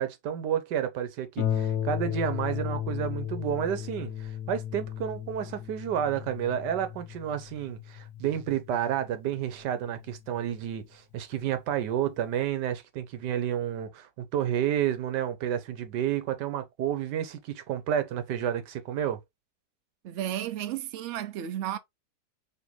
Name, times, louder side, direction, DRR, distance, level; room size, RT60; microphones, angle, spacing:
voice 1, 0.0-19.2, right 10 dB, 85° right, 1.4 m, -30 dB
Harp, 1.4-10.5 11.4-11.5 12.0-12.1, left 10 dB, 60° left, 1.1 m, -35 dB
voice 2, 20.0-21.8, right 11 dB, 65° right, 0.7 m, -33 dB
4.4 x 2.9 x 3.0 m
omnidirectional pair, 1.8 m